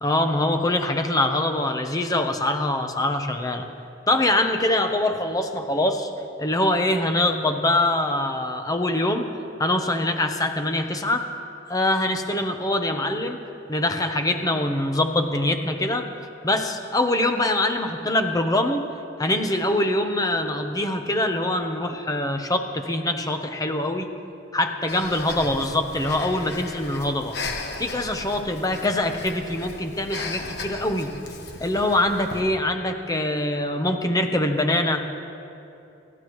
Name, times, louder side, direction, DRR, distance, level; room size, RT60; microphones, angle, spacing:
voice 1, 0.0-3.7 4.1-6.1 6.4-9.3 9.6-11.3 11.7-13.4 13.7-16.1 16.4-18.8 19.2-24.1 24.5-31.1 31.6-35.1, left 1 dB, 20° left, 6 dB, 0.9 m, -24 dB
Breathing, 24.9-32.4, left 3 dB, 55° left, 1.3 m, -36 dB
27.0 x 12.0 x 3.1 m, 2.8 s
head